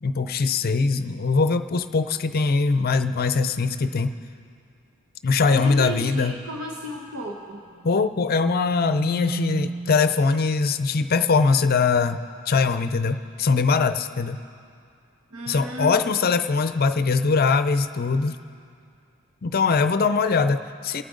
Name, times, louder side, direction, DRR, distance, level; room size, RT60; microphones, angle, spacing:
voice 1, 0.0-4.1 5.2-6.3 7.8-14.4 15.5-18.4 19.4-21.0, left 4 dB, 45° left, 11 dB, 0.5 m, -22 dB
voice 2, 5.5-7.6 15.3-16.0, equal, 85° right, 0 dB, 1.1 m, -33 dB
sound 1, 7.8-10.4, right 3 dB, 60° right, 0.7 m, -34 dB
25.5 x 8.9 x 3.8 m, 2.4 s
head